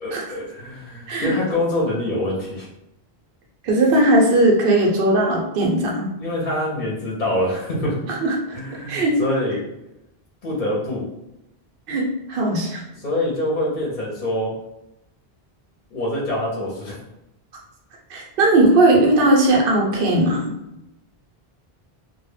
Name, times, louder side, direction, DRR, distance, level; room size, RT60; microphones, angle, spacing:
voice 1, 0.0-2.7 6.2-8.0 8.5-9.6 10.4-11.0 13.0-14.5 15.9-17.0, left 1 dB, 55° left, -3 dB, 0.6 m, -25 dB
voice 2, 3.6-6.1 8.1-8.6 8.9-9.2 11.9-12.8 18.1-20.5, right 1 dB, 65° right, -1 dB, 0.8 m, -18 dB
2.1 x 2.1 x 3.1 m, 0.88 s
omnidirectional pair, 1.0 m